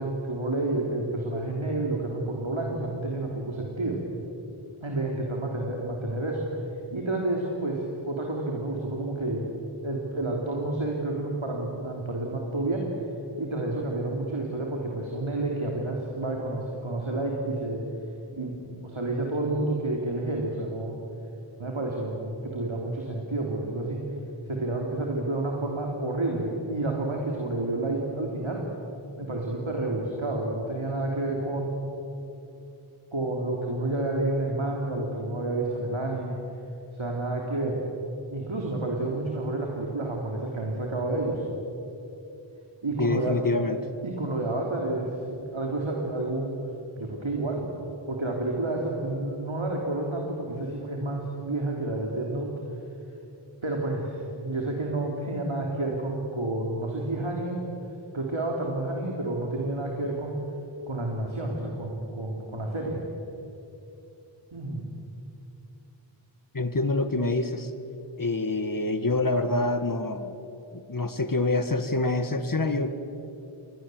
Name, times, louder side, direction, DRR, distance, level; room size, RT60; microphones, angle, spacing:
voice 1, 0.0-4.0 4.8-6.5 6.9-9.5 9.8-12.9 13.4-17.8 18.3-21.0 21.6-24.0 24.5-28.6 29.2-31.7 33.1-36.4 36.9-37.8 38.3-41.4 42.8-43.4 44.0-46.5 47.0-47.7 48.1-52.5 53.6-57.6 58.1-60.4 60.9-63.0 64.5-64.9, right 2 dB, 70° right, -1 dB, 3.4 m, -30 dB
voice 2, 43.0-43.8 66.5-67.7 68.2-70.4 70.7-73.0, left 2 dB, 40° left, 10 dB, 1.8 m, -26 dB
30.0 x 22.0 x 7.9 m, 2.9 s
wide cardioid pair, 45°, 49 cm